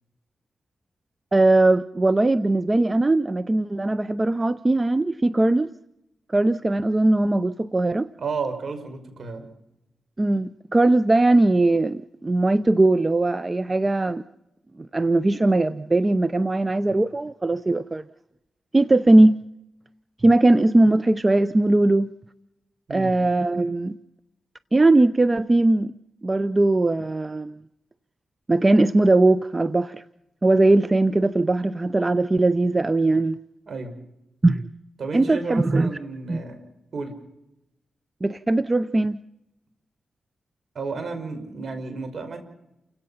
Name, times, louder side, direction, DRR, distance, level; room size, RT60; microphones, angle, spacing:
voice 1, 1.3-5.7 6.3-8.1 10.2-14.2 14.9-18.0 18.7-19.4 20.2-22.1 22.9-23.9 24.7-25.9 26.2-27.6 28.5-30.0 30.4-33.4 34.4-34.7 35.1-35.9 36.3-36.4 38.2-39.2, right 2 dB, 30° right, 0.7 m, -19 dB
voice 2, 8.2-9.5 22.9-23.1 33.7-33.9 35.0-36.6 36.9-37.1 40.7-42.4, right 4 dB, 65° right, 5.6 m, -32 dB
29.5 x 17.0 x 5.8 m
cardioid pair, 55°, 0 cm